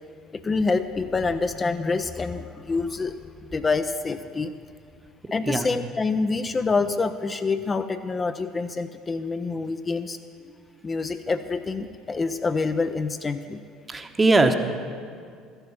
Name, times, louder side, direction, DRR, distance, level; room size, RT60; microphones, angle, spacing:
voice 1, 0.3-3.2 3.4-4.5 5.3-10.2 10.8-13.6, left 4 dB, 25° left, 8 dB, 0.5 m, -26 dB
voice 2, 13.9-14.5, right 2 dB, 20° right, 7 dB, 1.0 m, -20 dB
13.5 x 8.0 x 7.3 m, 2.2 s
hypercardioid pair, 60°, 0 cm